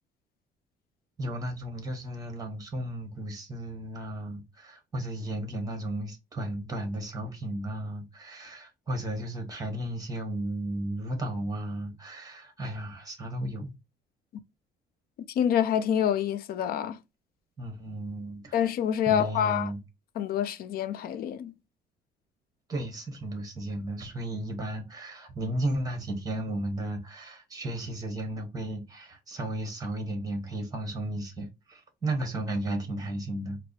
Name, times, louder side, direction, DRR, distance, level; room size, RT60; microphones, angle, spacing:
voice 1, 1.2-13.7 17.6-18.6 19.1-19.8 22.7-33.6, right 1 dB, 20° right, 1.3 m, -34 dB
voice 2, 15.3-17.0 18.5-19.7 20.2-21.5, left 9 dB, 60° left, 0.5 m, -27 dB
4.6 x 2.0 x 2.8 m
cardioid pair, 110°, 17 cm